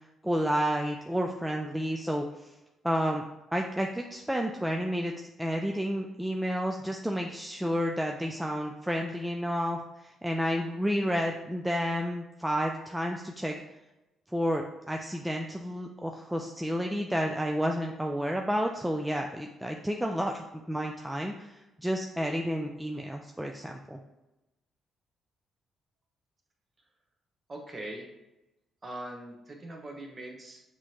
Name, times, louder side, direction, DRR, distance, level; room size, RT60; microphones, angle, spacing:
voice 1, 0.2-2.5 2.8-3.2 3.5-13.5 14.3-24.0, equal, 5° right, 2 dB, 0.4 m, -31 dB
voice 2, 27.5-28.1 28.8-30.6, right 1 dB, 30° right, 2 dB, 1.0 m, -41 dB
6.0 x 2.8 x 3.1 m, 0.97 s
cardioid pair, 90°, 0 cm